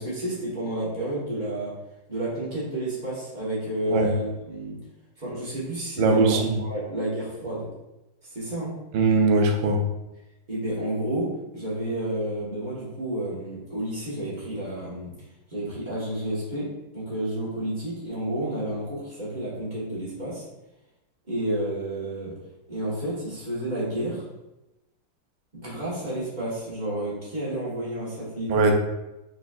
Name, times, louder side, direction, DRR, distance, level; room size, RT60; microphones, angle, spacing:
voice 1, 0.0-1.8 2.1-4.8 5.2-7.7 8.2-8.7 10.5-15.1 15.5-20.5 21.3-22.3 22.7-24.2 25.5-28.7, right 1 dB, 25° right, -8 dB, 1.1 m, -30 dB
voice 2, 6.0-6.6 8.9-9.8 28.5-28.7, right 3 dB, 70° right, 3 dB, 1.1 m, -20 dB
4.0 x 4.0 x 2.4 m, 0.97 s
omnidirectional pair, 2.3 m